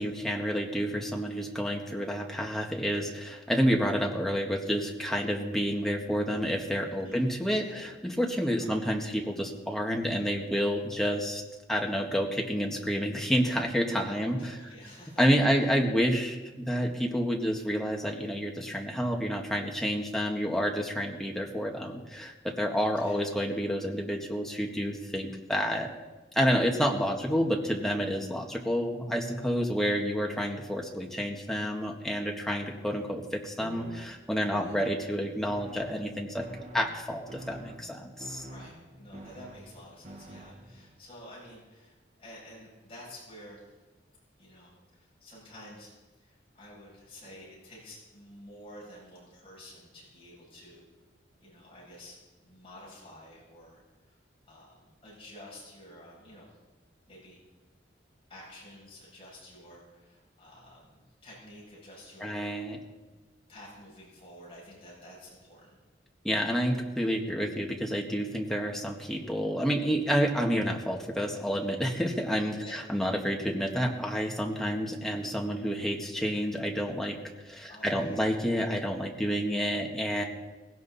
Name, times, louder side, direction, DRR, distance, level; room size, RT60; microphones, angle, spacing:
voice 1, 0.0-11.4 11.7-14.5 15.2-25.9 26.4-36.5 36.7-38.4 62.2-62.8 66.2-77.2 77.5-80.2, equal, ahead, 0 dB, 1.7 m, -29 dB
voice 2, 14.1-15.2 20.2-20.5 22.9-23.2 27.2-27.3 34.5-34.8 38.4-43.7 44.4-50.9 51.4-52.2 52.4-53.8 54.1-54.2 54.5-54.8 55.0-56.5 57.1-57.4 58.3-62.3 63.5-65.8 72.6-72.8 77.7-78.2, left 1 dB, 30° left, -5 dB, 7.3 m, -50 dB
sound 1, 33.6-41.0, equal, 35° right, 1.5 m, -47 dB
19.0 x 17.0 x 4.2 m, 1.2 s
head